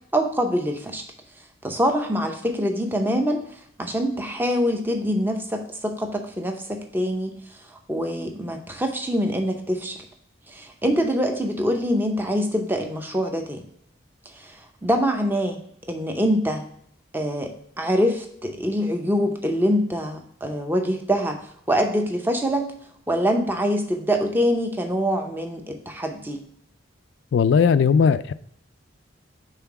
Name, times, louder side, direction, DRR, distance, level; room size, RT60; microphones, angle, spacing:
voice 1, 0.1-1.0 1.6-3.4 3.8-7.4 7.7-10.0 10.5-13.6 14.3-15.6 15.9-16.7 17.1-17.5 17.8-21.4 21.7-22.7 23.1-26.4, equal, 10° right, 4 dB, 0.6 m, -24 dB
voice 2, 27.3-28.3, left 6 dB, 65° left, 14 dB, 0.3 m, -18 dB
5.7 x 3.7 x 5.8 m, 0.69 s
head